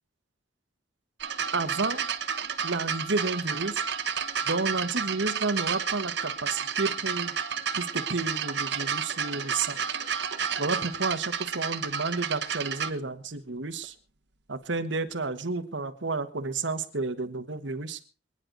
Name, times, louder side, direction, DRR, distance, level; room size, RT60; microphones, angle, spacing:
sound 1, 1.2-12.9 13.8-13.9, right 7 dB, 70° right, 1.2 m, -31 dB
voice 1, 1.5-2.0 2.6-3.8 4.5-7.3 7.7-9.8 10.6-13.9 14.5-18.0, right 3 dB, 85° right, 10 dB, 1.4 m, -31 dB
25.5 x 9.9 x 4.0 m, 0.34 s
head